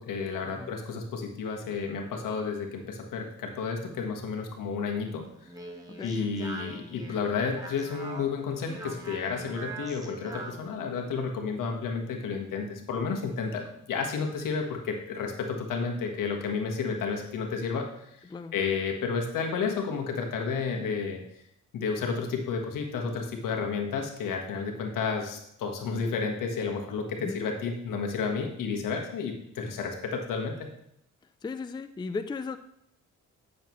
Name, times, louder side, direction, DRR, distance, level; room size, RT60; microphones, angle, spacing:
voice 1, 0.0-5.2 6.0-18.2 18.5-21.2 21.7-30.7, left 5 dB, 80° left, 2 dB, 1.4 m, -31 dB
Speech, 5.2-10.7, right 2 dB, 10° right, 1.3 m, -42 dB
voice 2, 5.9-6.2 18.2-18.6 27.2-27.4 31.4-32.6, left 4 dB, 15° left, 10 dB, 0.4 m, -36 dB
9.0 x 6.7 x 3.1 m, 0.75 s
cardioid pair, 80°, 32 cm